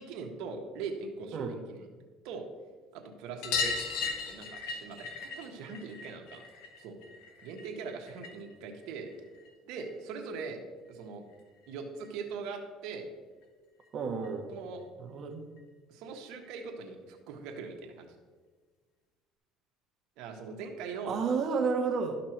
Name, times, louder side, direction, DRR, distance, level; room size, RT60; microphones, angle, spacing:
voice 1, 0.0-1.8 2.2-2.4 2.9-3.7 4.3-6.4 6.8-7.0 7.4-9.1 9.6-10.6 10.9-11.2 11.7-13.1 14.5-14.8 15.9-18.1 20.2-21.2, right 5 dB, 75° right, 2 dB, 1.5 m, -41 dB
sound 1, 3.4-8.5 8.8-10.0 11.3-11.4 11.6-11.7 12.0-12.1 13.4-13.5 13.8-13.9 14.2-14.3 15.6-15.7 16.4-16.5, left 5 dB, 85° left, 1.3 m, -37 dB
voice 2, 13.9-14.5 15.0-15.5 21.0-22.2, right 5 dB, 45° right, 4 dB, 1.4 m, -31 dB
12.0 x 5.8 x 4.6 m, 1.4 s
cardioid pair, 115°, 0 cm